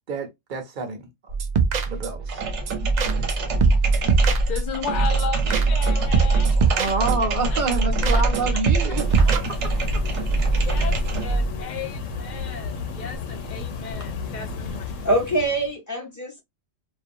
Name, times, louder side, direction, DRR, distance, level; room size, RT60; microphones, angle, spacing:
voice 1, 0.1-1.3 1.9-2.4 6.8-9.4 9.9-10.0, right 4 dB, 50° right, 0.7 m, -28 dB
sound 1, 1.3-2.3 2.7-2.8 3.0-3.3 3.6-4.8 5.2-5.9 6.1-7.4 7.7-7.8 8.0-8.4 8.7-9.4, right 6 dB, 85° right, 0.3 m, -23 dB
sound 2, 2.2-11.5, right 2 dB, 70° right, 1.0 m, -23 dB
voice 2, 4.5-6.9 7.5-7.6 8.1-8.2 8.9-9.0 9.2-9.3 10.5-14.9, left 7 dB, 55° left, 0.5 m, -34 dB
sound 3, 9.0-15.7, left 4 dB, 80° left, 1.0 m, -33 dB
voice 3, 15.0-16.4, right 1 dB, 20° left, 0.7 m, -24 dB
2.4 x 2.2 x 2.6 m
omnidirectional pair, 1.3 m